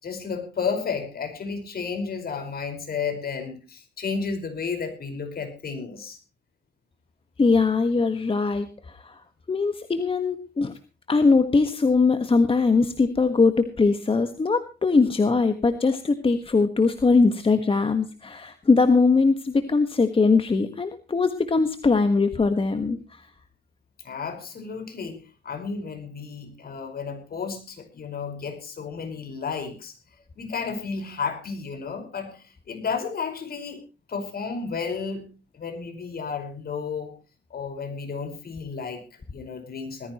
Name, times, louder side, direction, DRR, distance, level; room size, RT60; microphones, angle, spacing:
voice 1, 0.0-6.2 24.0-29.9 30.3-33.8 34.1-35.3 35.5-37.1 37.5-40.1, left 5 dB, 50° left, 7 dB, 5.0 m, -32 dB
voice 2, 7.4-8.7 9.0-9.1 9.5-10.7 11.1-23.0, left 4 dB, 25° left, 9 dB, 1.5 m, -21 dB
19.5 x 15.0 x 3.0 m, 0.33 s
cardioid pair, 90°, 20 cm